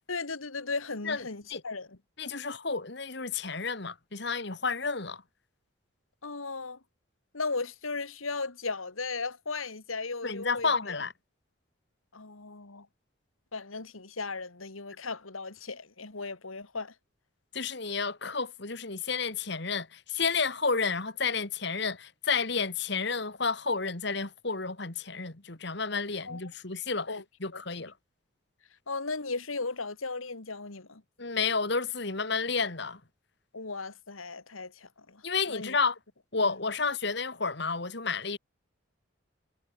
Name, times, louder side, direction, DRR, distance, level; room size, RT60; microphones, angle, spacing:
voice 1, 0.1-2.0 6.2-6.8 7.3-10.7 12.1-12.9 13.5-16.9 26.3-26.4 27.1-27.2 27.5-27.6 28.9-31.0 33.5-35.2 35.5-35.8 36.4-36.5, left 3 dB, 85° left, 2.2 m, -36 dB
voice 2, 2.2-5.2 10.2-11.1 17.5-27.1 27.4-27.9 31.2-33.0 35.2-36.0 36.3-38.4, left 4 dB, 55° left, 2.0 m, -31 dB
head